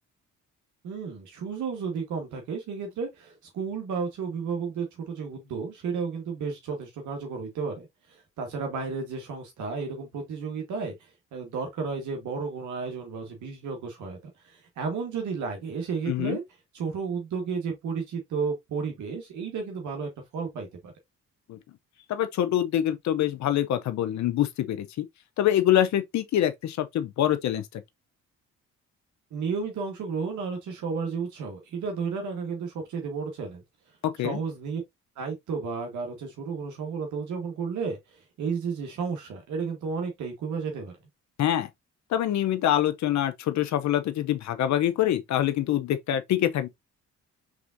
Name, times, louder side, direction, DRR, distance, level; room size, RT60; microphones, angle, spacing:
voice 1, 0.8-14.2 14.4-16.4 16.7-20.9 29.3-33.6 34.2-34.8 35.2-40.9, right 5 dB, 75° right, 1.5 m, -32 dB
voice 2, 16.1-16.4 21.5-21.6 22.1-25.0 25.4-27.8 34.2-34.4 41.4-41.7 42.1-46.7, left 11 dB, 65° left, 0.6 m, -25 dB
4.9 x 3.5 x 2.6 m
cardioid pair, 90°, 30 cm